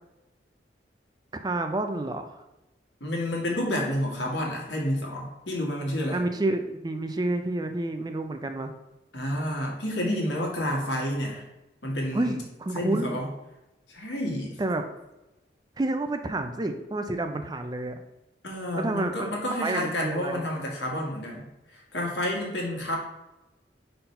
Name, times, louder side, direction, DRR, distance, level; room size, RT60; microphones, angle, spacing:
voice 1, 1.4-2.4 6.1-8.7 12.1-13.2 14.6-14.8 15.8-18.0 18.8-19.3 19.6-20.5, right 2 dB, 25° right, 7 dB, 0.4 m, -29 dB
voice 2, 3.0-6.2 9.1-11.4 11.8-12.4 12.7-13.2 13.9-14.5 18.4-21.5 21.9-23.0, left 1 dB, 85° left, -1 dB, 1.6 m, -29 dB
4.4 x 3.9 x 5.4 m, 0.99 s
head